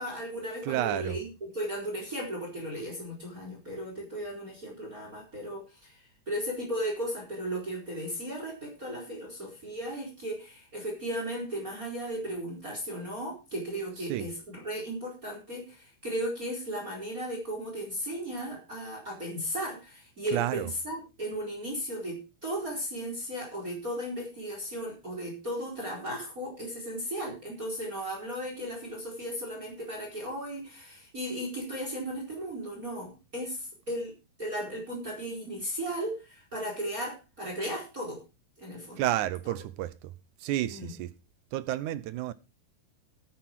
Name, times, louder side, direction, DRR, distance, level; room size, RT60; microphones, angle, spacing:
voice 1, 0.0-34.1 34.4-38.2 38.6-39.0 40.7-40.9, equal, 25° right, 4.8 m, -36 dB
voice 2, 0.7-1.2 14.1-14.3 20.3-20.7 39.0-39.9 40.4-41.1 41.5-42.3, right 13 dB, 75° right, 2.0 m, -30 dB
13.0 x 10.5 x 4.6 m
omnidirectional pair, 3.9 m